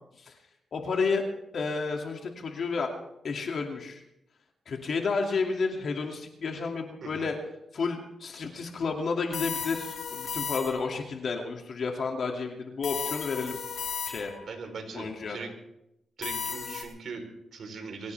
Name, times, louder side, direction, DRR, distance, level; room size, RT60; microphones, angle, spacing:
voice 1, 0.7-1.2 1.5-2.9 3.2-4.0 4.7-7.4 7.7-13.6 14.1-14.3 14.9-15.4, left 4 dB, 60° left, 2 dB, 2.4 m, -31 dB
sound 1, 9.3-11.0 12.8-14.5 16.2-16.8, left 6 dB, 75° left, 5.7 m, -35 dB
voice 2, 14.4-15.5 16.2-18.1, right 4 dB, 70° right, 4 dB, 3.9 m, -40 dB
23.5 x 16.5 x 3.5 m, 0.85 s
cardioid pair, 85°, 0 cm